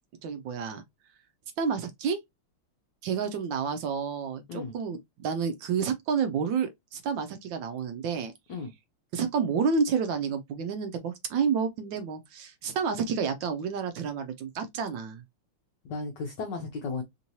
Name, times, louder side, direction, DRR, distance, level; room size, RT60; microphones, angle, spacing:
voice 1, 0.2-0.8 1.6-2.2 3.0-8.3 9.1-15.2, right 6 dB, 75° right, 1.1 m, -30 dB
voice 2, 15.8-17.0, left 4 dB, 70° left, 1.1 m, -34 dB
3.6 x 3.0 x 2.6 m
omnidirectional pair, 2.4 m